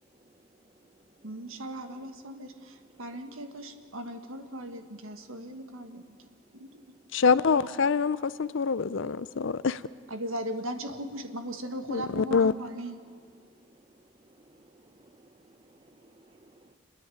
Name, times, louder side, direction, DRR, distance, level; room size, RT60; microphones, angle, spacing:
voice 1, 1.2-6.2 6.5-6.8 10.1-13.0, right 1 dB, 85° right, 7 dB, 1.5 m, -38 dB
voice 2, 7.1-9.8 11.9-12.5, left 5 dB, 65° left, 16 dB, 0.5 m, -25 dB
voice 3, 14.2-16.8, right 1 dB, 25° right, 9 dB, 0.9 m, -59 dB
29.0 x 10.0 x 9.1 m, 2.1 s
head